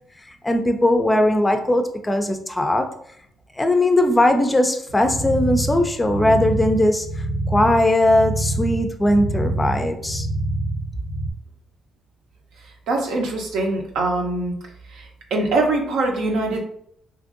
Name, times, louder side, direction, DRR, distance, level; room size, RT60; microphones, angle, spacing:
voice 1, 0.4-2.9 3.6-7.1 7.5-10.3, left 1 dB, 15° left, 6 dB, 0.4 m, -19 dB
sound 1, 4.9-11.3, right 1 dB, 80° left, 0.4 m, -26 dB
voice 2, 12.9-14.5 14.9-16.6, right 2 dB, 85° right, 1 dB, 0.7 m, -23 dB
2.9 x 2.5 x 2.5 m, 0.69 s
cardioid pair, 105°, 0 cm